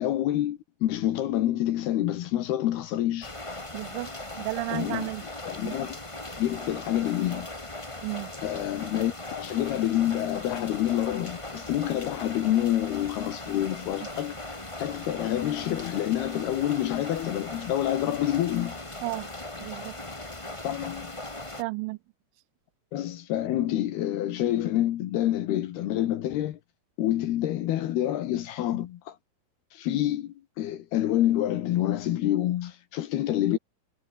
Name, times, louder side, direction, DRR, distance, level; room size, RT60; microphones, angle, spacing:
voice 1, 0.0-3.3 4.7-5.1 5.5-6.0 6.4-7.5 8.4-14.4 14.8-18.8 20.6-21.1 22.9-26.6 27.0-29.2 29.7-33.6, left 13 dB, 65° left, 2.8 m, -27 dB
sound 1, 3.2-21.6, left 2 dB, 40° left, 0.4 m, -39 dB
voice 2, 3.7-4.1 4.4-5.2 5.6-5.8 8.0-8.3 19.0-19.3 19.6-20.0 21.6-22.0, right 24 dB, 85° right, 2.9 m, -32 dB
omnidirectional pair, 5.6 m